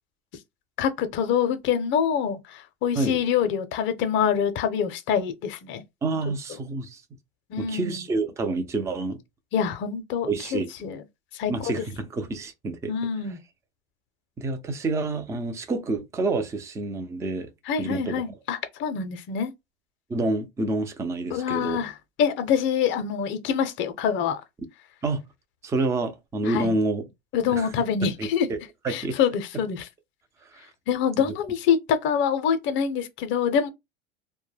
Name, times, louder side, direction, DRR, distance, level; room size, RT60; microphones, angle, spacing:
voice 1, 0.8-5.8 7.5-8.0 9.5-11.0 11.3-11.9 12.9-13.4 17.7-19.5 21.3-24.4 26.4-26.8 27.3-28.5 28.9-29.9 30.9-33.7, left 7 dB, 40° left, 0.6 m, -25 dB
voice 2, 6.0-7.0 7.6-9.2 10.3-10.7 11.5-12.9 14.4-17.5 17.8-18.2 20.1-21.8 25.0-25.2 25.6-27.0 27.5-27.7 28.2-28.6 28.8-29.2 30.5-30.7, right 2 dB, 10° right, 0.4 m, -28 dB
2.1 x 2.1 x 3.2 m
supercardioid pair, 120°, 30 cm